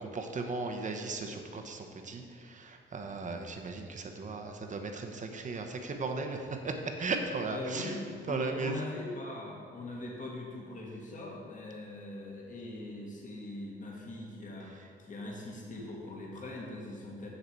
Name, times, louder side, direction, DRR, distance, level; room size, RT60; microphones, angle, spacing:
voice 1, 0.0-7.9 8.3-8.7, right 3 dB, 40° right, 5 dB, 0.9 m, -36 dB
voice 2, 7.5-17.3, left 2 dB, 40° left, -2 dB, 1.6 m, -41 dB
6.9 x 6.8 x 4.6 m, 2.2 s
cardioid pair, 90°, 20 cm